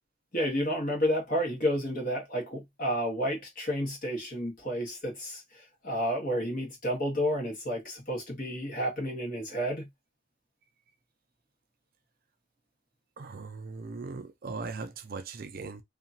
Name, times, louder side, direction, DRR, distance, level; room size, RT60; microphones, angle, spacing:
voice 1, 0.3-9.9, equal, 40° left, 1.3 m, -31 dB
voice 2, 13.2-15.8, right 4 dB, 45° right, 0.4 m, -39 dB
2.8 x 2.4 x 2.6 m
head